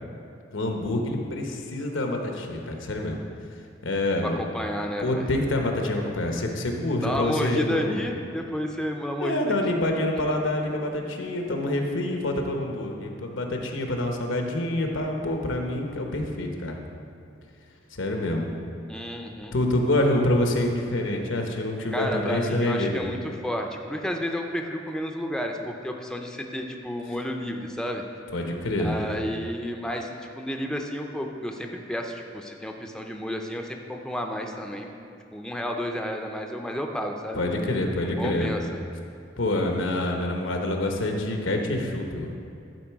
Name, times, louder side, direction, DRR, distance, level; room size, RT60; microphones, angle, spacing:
voice 1, 0.5-3.2 3.8-4.4 5.0-8.1 9.2-16.8 18.0-18.5 19.5-23.0 28.3-29.0 37.4-38.5 39.4-42.3, left 1 dB, 90° left, 2 dB, 1.0 m, -26 dB
voice 2, 4.2-5.3 7.0-9.5 18.9-19.5 21.9-28.0 28.8-34.9 35.3-37.4 38.2-38.6, equal, 5° left, 2 dB, 0.5 m, -31 dB
11.0 x 4.6 x 4.6 m, 2.5 s
head